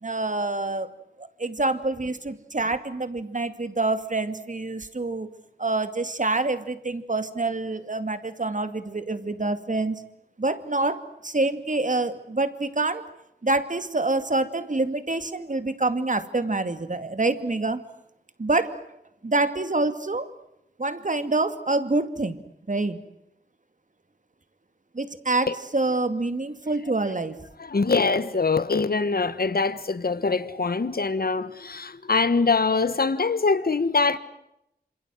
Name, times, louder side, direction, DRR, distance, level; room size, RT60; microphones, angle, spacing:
voice 1, 0.0-0.9 1.2-5.3 5.6-10.0 10.4-13.0 13.4-17.8 18.4-18.8 19.2-20.3 20.8-22.4 22.7-23.0 24.9-27.4, right 2 dB, 50° right, 2.4 m, -26 dB
voice 2, 27.6-34.2, left 4 dB, 65° left, 1.3 m, -23 dB
27.5 x 27.0 x 7.8 m
wide cardioid pair, 55°, 17 cm